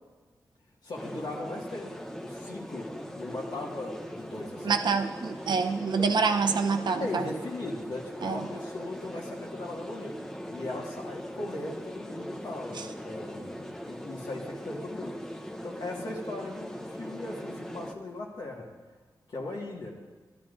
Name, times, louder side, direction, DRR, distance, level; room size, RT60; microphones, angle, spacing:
voice 1, 0.8-2.0 2.2-4.8 7.0-10.2 10.5-15.2 15.6-18.7 19.3-19.9, left 2 dB, 75° left, -2 dB, 1.6 m, -38 dB
sound 1, 1.0-17.9, equal, 5° left, 0.7 m, -40 dB
voice 2, 4.6-7.3 8.2-8.5 12.7-12.9, right 5 dB, 75° right, 7 dB, 0.6 m, -27 dB
12.5 x 12.0 x 2.5 m, 1.4 s
wide cardioid pair, 85°, 8 cm